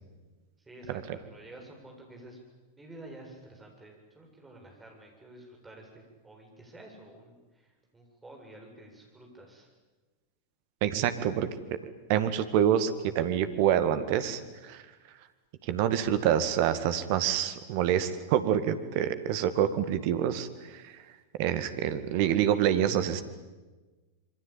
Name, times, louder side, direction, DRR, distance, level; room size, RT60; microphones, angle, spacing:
voice 1, 0.6-2.4 2.8-9.7, right 1 dB, 10° right, 1 dB, 7.9 m, -50 dB
voice 2, 10.8-11.5 12.1-14.4 14.7-14.8 15.6-20.9 21.4-23.2, right 10 dB, 45° right, 10 dB, 2.0 m, -27 dB
27.0 x 23.5 x 8.9 m, 1.3 s
figure-of-eight pair, 90°, 0 cm